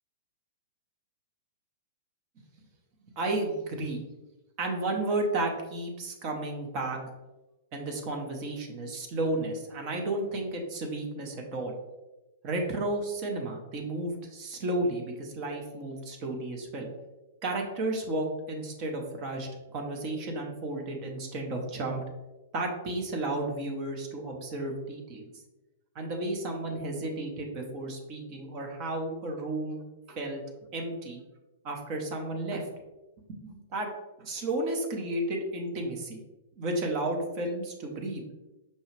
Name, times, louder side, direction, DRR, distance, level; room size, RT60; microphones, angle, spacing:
voice 1, 3.2-4.0 4.6-7.0 7.7-11.7 12.4-16.9 17.4-22.0 22.5-25.2 25.9-29.8 30.1-30.4 30.7-31.2 31.6-32.7 33.3-33.9 34.2-36.2 36.6-38.2, right 2 dB, 40° right, 1 dB, 0.8 m, -32 dB
5.4 x 2.3 x 3.2 m, 1.1 s
figure-of-eight pair, 105°, 0 cm